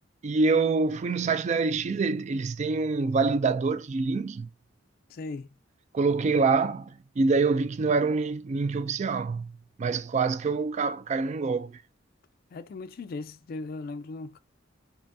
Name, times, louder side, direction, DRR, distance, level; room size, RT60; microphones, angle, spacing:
voice 1, 0.2-4.5 5.9-9.5 9.8-11.8, right 4 dB, 35° right, 0.3 m, -26 dB
voice 2, 5.1-5.5 12.5-14.4, left 3 dB, 50° left, 0.3 m, -38 dB
3.4 x 3.2 x 2.6 m
head